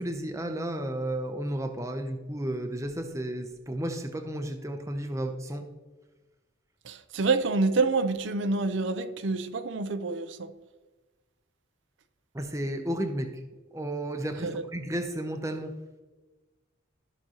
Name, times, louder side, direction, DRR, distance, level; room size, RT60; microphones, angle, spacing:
voice 1, 0.0-5.6 12.3-13.3 13.7-15.7, right 1 dB, 15° right, 0.7 m, -33 dB
voice 2, 6.8-10.5 14.4-14.6, right 3 dB, 75° right, 0.6 m, -27 dB
13.5 x 6.0 x 3.0 m
head